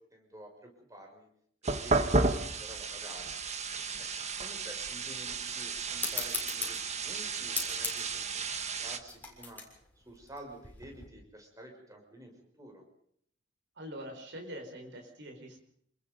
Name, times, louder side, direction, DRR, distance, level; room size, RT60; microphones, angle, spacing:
voice 1, 0.1-1.3 1.6-3.3 4.0-8.5 8.8-9.6 10.0-12.8, right 1 dB, 20° right, 2 dB, 5.9 m, -50 dB
sound 1, 1.6-9.0, right 3 dB, 35° right, 1.5 m, -33 dB
sound 2, 6.0-11.1, left 4 dB, 10° left, 6.9 m, -40 dB
voice 2, 13.8-15.6, equal, 65° right, 3 dB, 5.2 m, -44 dB
28.0 x 21.5 x 5.4 m, 0.67 s
head